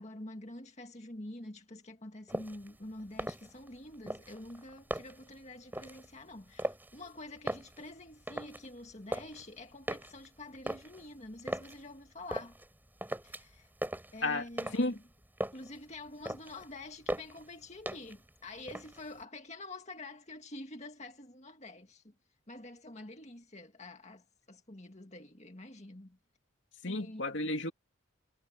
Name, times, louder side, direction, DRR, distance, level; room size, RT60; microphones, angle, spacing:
voice 1, 0.0-12.6 13.2-13.7 14.1-15.0 15.5-22.1 22.5-26.2 26.8-27.4, left 2 dB, 30° left, 2.1 m, -47 dB
sound 1, 2.3-2.7 3.1-3.8 4.1-5.3 5.7-6.1 6.6-7.1 7.4-8.7 8.9-9.4 9.9-11.8 12.3-12.7 13.0-13.6 13.8-15.0 15.2-15.8 16.1-16.7 17.1-17.5 17.9-18.3 18.6-19.2, right 1 dB, 10° right, 4.3 m, -39 dB
voice 2, 26.8-27.7, left 2 dB, 60° left, 2.8 m, -32 dB
head